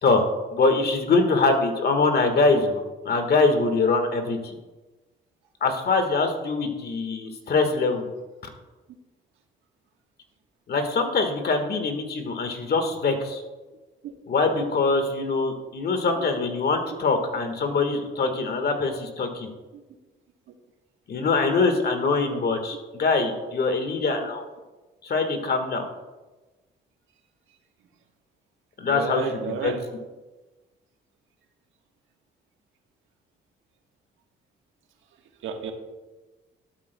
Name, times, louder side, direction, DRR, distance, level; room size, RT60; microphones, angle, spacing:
voice 1, 0.0-4.4 5.6-8.1 10.7-13.4 14.3-19.5 21.1-24.4 25.0-25.9 28.8-29.2 29.6-29.7, left 3 dB, 55° left, 6 dB, 1.6 m, -23 dB
voice 2, 28.9-29.8 35.4-35.7, right 6 dB, 80° right, 4 dB, 1.4 m, -32 dB
12.5 x 12.0 x 2.2 m, 1.2 s
cardioid pair, 90°, 20 cm